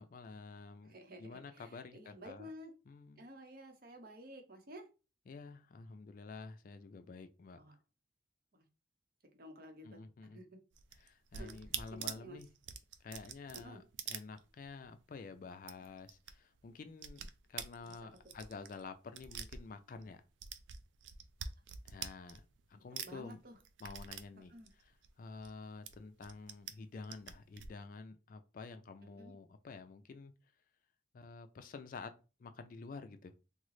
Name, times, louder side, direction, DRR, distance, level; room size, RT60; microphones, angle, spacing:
voice 1, 0.0-2.5 2.9-3.2 5.3-7.6 9.8-10.4 10.9-12.5 13.0-20.2 21.8-23.4 23.8-30.3 31.1-33.3, left 4 dB, 50° left, 0.3 m, -50 dB
voice 2, 0.8-2.7 3.1-4.9 7.6-7.8 8.5-8.7 9.3-10.1 10.3-10.6 11.4-11.6 11.9-12.4 13.5-13.8 17.9-18.0 18.2-18.3 23.0-23.5 24.4-24.7 29.0-29.4, equal, 55° right, 0.7 m, -52 dB
sound 1, 10.7-14.9 15.2-15.3 15.6-16.3 16.6-20.1 20.4-22.7 23.0-25.5 25.9-26.7 27.0-27.7, right 8 dB, 90° right, 0.4 m, -46 dB
3.7 x 2.0 x 3.1 m
head